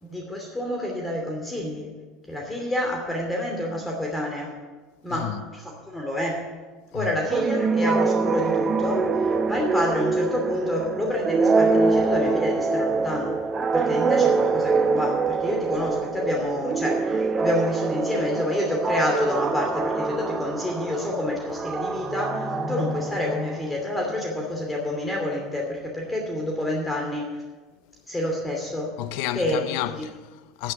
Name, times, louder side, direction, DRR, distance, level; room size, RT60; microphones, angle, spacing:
voice 1, 0.0-1.9 2.3-4.5 5.0-6.4 6.9-13.4 13.7-27.4 28.1-28.9 29.3-30.1, left 1 dB, 10° left, 2.7 m, -28 dB
voice 2, 5.1-5.4 6.9-7.1 29.0-30.7, left 13 dB, 65° left, 0.6 m, -31 dB
sound 1, 7.3-23.7, right 4 dB, 30° right, 0.9 m, -24 dB
sound 2, 21.9-25.3, left 3 dB, 45° left, 4.3 m, -36 dB
9.9 x 9.6 x 7.2 m
hypercardioid pair, 80°, 0 cm